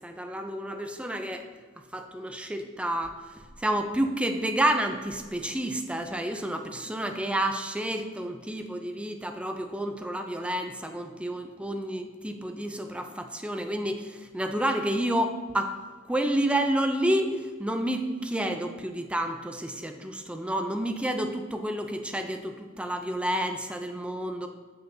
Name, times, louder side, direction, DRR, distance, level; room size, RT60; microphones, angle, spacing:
voice 1, 0.0-1.5 1.9-15.8 16.1-24.5, right 1 dB, 5° right, 5 dB, 0.4 m, -30 dB
8.0 x 6.5 x 2.7 m, 1.5 s
head